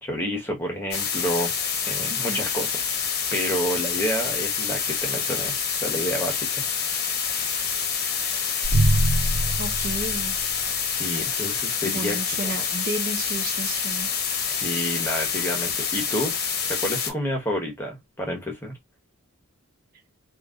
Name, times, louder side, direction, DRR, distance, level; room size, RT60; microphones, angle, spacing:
voice 1, 0.0-1.5 1.9-2.9 3.3-6.9 7.2-7.5 8.5-8.8 10.8-12.5 14.4-16.4 16.6-18.8, equal, 10° left, 1.1 m, -30 dB
sound 1, 0.9-17.1, left 6 dB, 45° left, 0.7 m, -27 dB
voice 2, 2.1-2.4 9.6-10.4 11.8-14.1, right 2 dB, 45° right, 0.6 m, -32 dB
sound 2, 8.6-10.9, right 1 dB, 85° right, 0.6 m, -23 dB
3.3 x 2.5 x 2.4 m
head